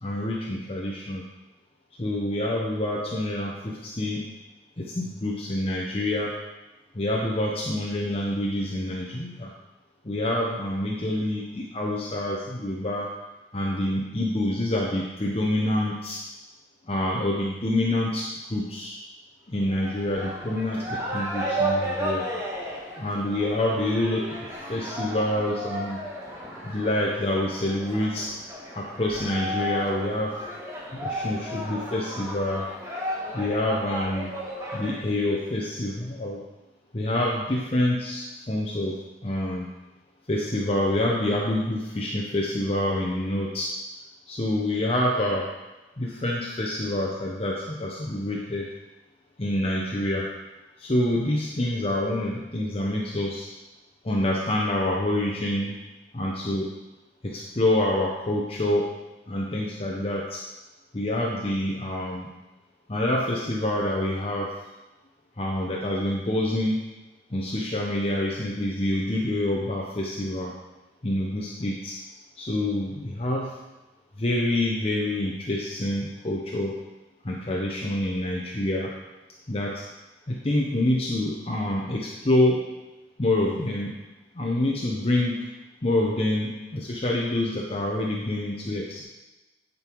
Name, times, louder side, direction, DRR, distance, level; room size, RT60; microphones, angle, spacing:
voice 1, 0.0-1.3 2.0-4.3 4.8-6.4 6.9-9.5 10.0-13.1 13.5-16.2 16.9-19.0 19.5-22.3 23.0-26.0 26.6-28.3 28.7-30.4 30.9-32.7 33.3-34.3 34.7-36.4 36.9-39.7 40.3-43.7 44.3-45.5 46.0-48.7 49.4-50.3 50.8-53.5 54.0-55.7 56.1-56.7 57.2-59.0 59.3-60.4 60.9-62.3 62.9-64.5 65.4-66.8 67.3-70.5 71.0-72.0 72.4-73.5 74.2-76.7 77.2-78.9 79.5-79.8 80.3-82.7 83.2-84.0 84.3-85.5 85.8-89.0, left 1 dB, 35° left, -3 dB, 0.9 m, -27 dB
sound 1, 19.7-35.0, right 1 dB, 15° right, 1.5 m, -33 dB
10.5 x 5.4 x 4.6 m, 1.1 s
head